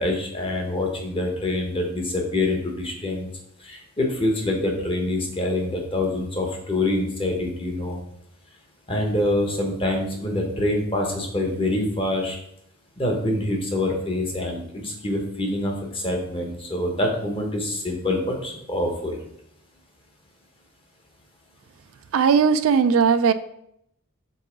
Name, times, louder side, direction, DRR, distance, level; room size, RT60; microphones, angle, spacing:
voice 1, 0.0-3.3 3.6-8.0 8.9-12.4 13.0-19.2, left 1 dB, 25° left, 1 dB, 1.1 m, -25 dB
voice 2, 22.1-23.3, right 6 dB, 65° right, 12 dB, 0.3 m, -18 dB
5.4 x 3.7 x 5.1 m, 0.75 s
head